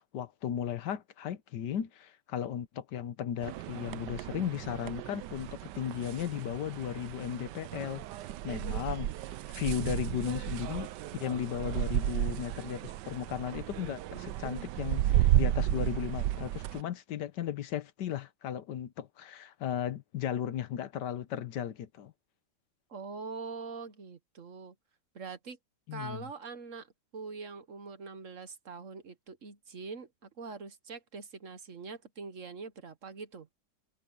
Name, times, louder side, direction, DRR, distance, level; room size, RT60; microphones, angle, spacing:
voice 1, 0.0-8.0 8.4-9.1 9.5-10.9 11.2-22.1 25.9-26.3, left 9 dB, 75° left, 1.5 m, -36 dB
sound 1, 3.4-16.8, right 13 dB, 80° right, 1.2 m, -33 dB
voice 2, 22.9-24.7 25.1-25.6 25.9-33.5, right 4 dB, 50° right, 1.4 m, -43 dB
omnidirectional pair, 1.9 m